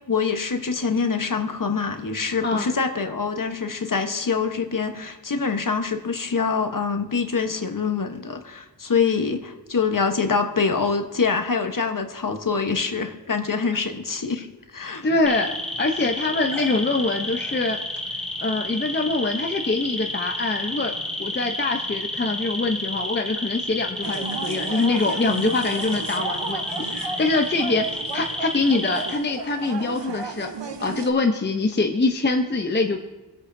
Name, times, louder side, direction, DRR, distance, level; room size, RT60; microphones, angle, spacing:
voice 1, 0.1-15.1, left 5 dB, 45° left, 6 dB, 1.1 m, -25 dB
voice 2, 15.0-17.8 18.4-20.9 21.2-30.5 30.8-33.0, left 3 dB, 25° left, 4 dB, 0.7 m, -24 dB
sound 1, 15.3-29.1, left 1 dB, ahead, 1.6 m, -31 dB
sound 2, 24.0-31.1, right 5 dB, 75° right, 1.0 m, -34 dB
24.5 x 8.4 x 2.6 m, 1.1 s
wide cardioid pair, 80°, 43 cm